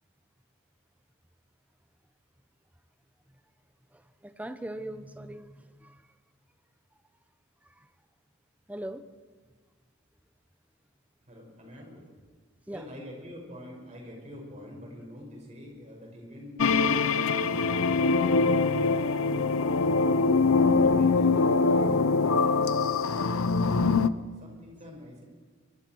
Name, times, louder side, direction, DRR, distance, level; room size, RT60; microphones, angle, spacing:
voice 1, 3.9-6.0 7.6-7.9 8.7-9.1 12.7-12.8, right 1 dB, 5° right, 10 dB, 0.8 m, -40 dB
voice 2, 11.2-12.1 12.7-16.6 17.1-17.6 20.8-22.9 24.4-25.2, left 1 dB, 35° right, -1 dB, 6.1 m, -46 dB
sound 1, 16.6-24.1, left 4 dB, 70° left, 0.7 m, -23 dB
24.5 x 23.0 x 4.7 m, 1.5 s
head